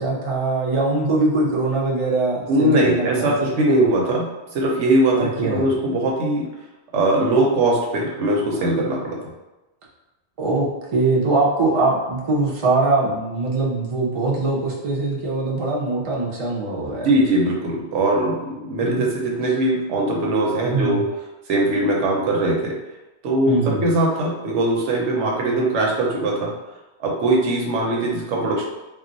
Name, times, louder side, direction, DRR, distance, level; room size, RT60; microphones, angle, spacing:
voice 1, 0.0-3.7 5.1-5.7 10.4-10.6 10.9-17.1 18.8-19.1 20.6-21.0 23.5-23.8, right 3 dB, 40° right, -3 dB, 0.5 m, -22 dB
voice 2, 2.5-6.5 6.9-9.2 16.9-21.0 21.5-22.7 23.2-26.5 27.0-28.6, right 1 dB, 85° right, -2 dB, 1.0 m, -21 dB
2.3 x 2.2 x 3.8 m, 1.0 s
omnidirectional pair, 1.2 m